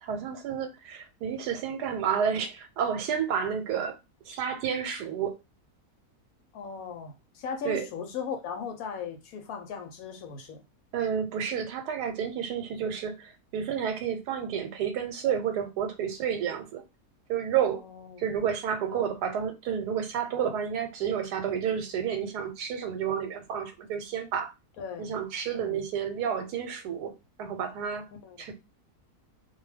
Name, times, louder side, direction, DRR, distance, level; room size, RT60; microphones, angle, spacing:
voice 1, 0.0-4.0 4.3-5.3 7.6-7.9 10.9-16.8 17.3-17.8 18.2-24.5 25.0-27.1 27.4-28.1 28.4-28.5, right 8 dB, 90° right, 1.2 m, -30 dB
voice 2, 6.5-10.6 17.7-18.4 18.9-19.1 24.8-25.1 25.5-25.8 28.2-28.5, left 6 dB, 70° left, 1.0 m, -38 dB
2.5 x 2.2 x 3.2 m
omnidirectional pair, 1.7 m